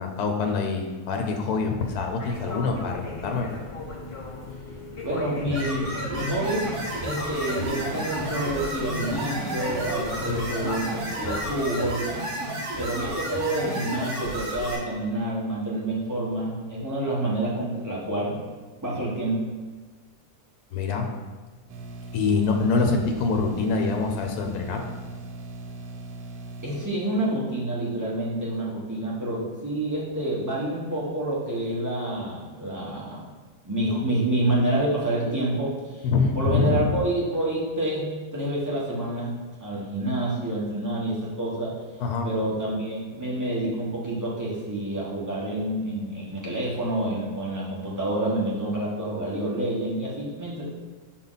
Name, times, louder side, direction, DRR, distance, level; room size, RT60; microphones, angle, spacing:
voice 1, 0.0-3.5 10.3-10.5 20.7-21.1 22.1-24.9 36.0-36.9 42.0-42.3, left 4 dB, 80° left, 3 dB, 1.2 m, -25 dB
sound 1, 2.2-11.7, left 2 dB, 45° left, 0.4 m, -38 dB
voice 2, 5.0-6.7 7.0-12.1 12.8-18.4 18.8-19.4 26.6-33.2 33.6-36.1 36.3-39.3 39.6-41.8 42.2-50.6, right 1 dB, 10° right, -7 dB, 1.4 m, -28 dB
sound 2, 5.5-14.7, right 1 dB, 35° right, 1.7 m, -32 dB
sound 3, 21.7-26.9, right 2 dB, 80° right, 1.1 m, -39 dB
5.6 x 4.3 x 4.0 m, 1.4 s
omnidirectional pair, 1.6 m